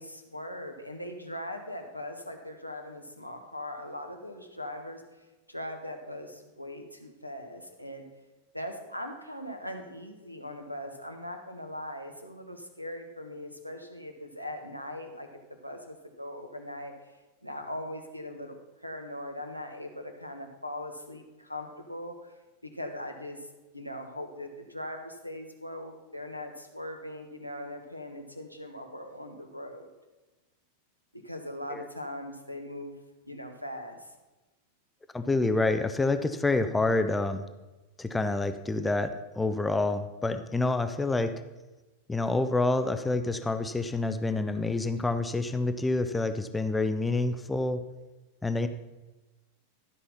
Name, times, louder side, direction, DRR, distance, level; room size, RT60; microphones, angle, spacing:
voice 1, 0.0-5.0 5.5-8.1 8.5-15.3 15.6-16.9 17.4-22.3 22.6-23.5 23.7-29.9 31.1-32.9 33.3-34.1, left 1 dB, 90° left, 3 dB, 1.2 m, -40 dB
voice 2, 35.1-37.5 38.0-41.4 42.1-47.8 48.4-48.7, left 2 dB, 10° left, 9 dB, 0.6 m, -28 dB
12.5 x 5.6 x 5.7 m, 1.1 s
figure-of-eight pair, 90°, 0 cm